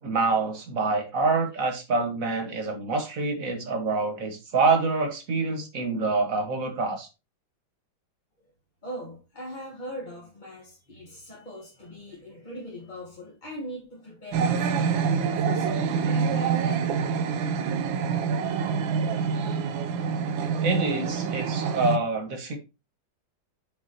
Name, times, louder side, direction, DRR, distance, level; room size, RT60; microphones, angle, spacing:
voice 1, 0.0-7.1 20.6-22.6, right 3 dB, 45° right, 1.8 m, -26 dB
voice 2, 8.8-17.0, equal, 25° left, 1.4 m, -41 dB
sound 1, 14.3-22.0, right 6 dB, 80° right, 1.5 m, -26 dB
8.6 x 5.7 x 2.9 m
omnidirectional pair, 2.1 m